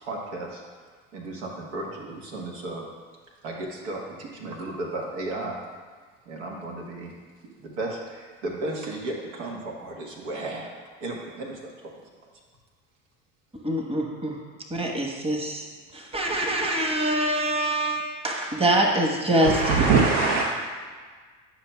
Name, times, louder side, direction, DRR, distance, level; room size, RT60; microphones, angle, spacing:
voice 1, 0.0-0.6 1.1-2.9 3.4-5.6 6.3-7.1 7.6-10.7 11.0-11.9, right 2 dB, 85° right, -1 dB, 1.3 m, -34 dB
voice 2, 13.6-14.4 14.7-15.7 15.9-19.8, right 1 dB, 15° right, 0 dB, 1.1 m, -25 dB
voice 3, 19.4-20.4, right 4 dB, 65° right, -1 dB, 0.8 m, -20 dB
10.5 x 5.7 x 2.3 m, 1.5 s
hypercardioid pair, 75°, 36 cm